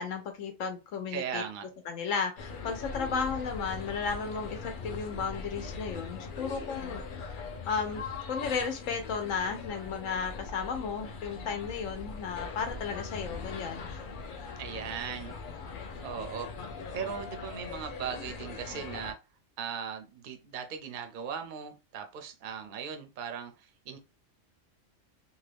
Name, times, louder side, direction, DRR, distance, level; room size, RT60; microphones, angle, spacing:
voice 1, 0.0-1.4 1.9-7.3 7.7-8.0 8.3-14.1, left 5 dB, 85° left, 1.1 m, -34 dB
voice 2, 1.1-1.7 14.6-15.3 16.0-16.5 16.9-19.2 19.6-24.0, right 7 dB, 50° right, 0.6 m, -38 dB
sound 1, 2.4-19.1, left 4 dB, 55° left, 0.6 m, -41 dB
2.8 x 2.3 x 3.3 m
omnidirectional pair, 1.3 m